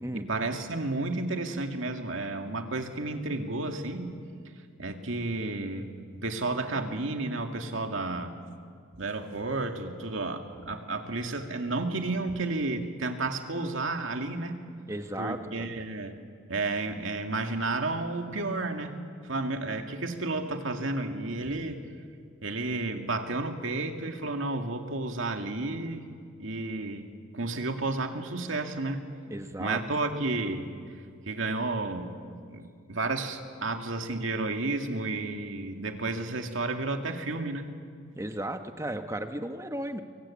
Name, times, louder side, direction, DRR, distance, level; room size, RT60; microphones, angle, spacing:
voice 1, 0.1-4.2 4.8-5.9 6.2-8.3 9.0-14.6 15.2-16.2 16.5-21.9 22.4-26.1 26.4-29.0 29.6-30.7 31.3-37.7, right 2 dB, 75° right, 5 dB, 2.2 m, -32 dB
voice 2, 14.9-15.7 29.3-29.8 38.2-40.0, right 1 dB, 15° right, 7 dB, 1.1 m, -35 dB
24.5 x 24.0 x 8.6 m, 2.2 s
head